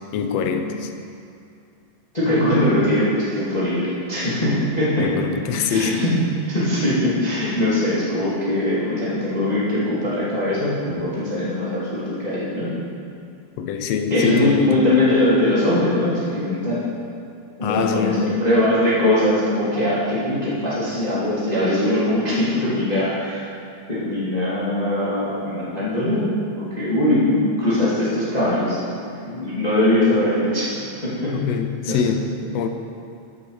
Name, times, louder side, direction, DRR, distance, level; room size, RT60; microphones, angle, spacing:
voice 1, 0.1-0.9 5.0-6.2 13.6-14.9 17.6-18.6 31.3-32.7, left 6 dB, 75° left, 6 dB, 1.6 m, -24 dB
voice 2, 2.1-5.1 5.7-6.2 6.5-12.7 14.1-16.8 17.6-23.4 23.9-31.4 31.9-32.0, left 1 dB, 15° left, -9 dB, 2.1 m, -21 dB
13.5 x 7.5 x 4.9 m, 2.5 s
omnidirectional pair, 3.3 m